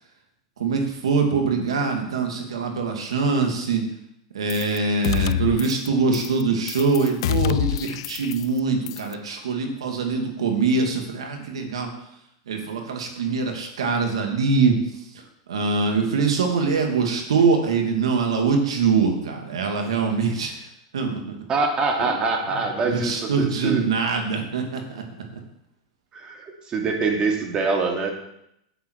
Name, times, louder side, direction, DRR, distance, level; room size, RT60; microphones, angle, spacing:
voice 1, 0.6-3.8 4.3-11.9 12.5-15.2 15.5-20.7 20.9-21.4 22.0-22.1 22.8-25.0, right 4 dB, 80° right, 3 dB, 2.2 m, -23 dB
sound 1, 4.5-4.8 5.0-5.9 6.1-6.4 6.7-8.6 8.9-9.1, left 14 dB, 70° left, 0.3 m, -26 dB
voice 2, 21.5-23.8 26.1-28.1, right 4 dB, 30° right, 1 dB, 2.4 m, -24 dB
9.2 x 8.7 x 4.6 m, 0.79 s
hypercardioid pair, 110°, 3 cm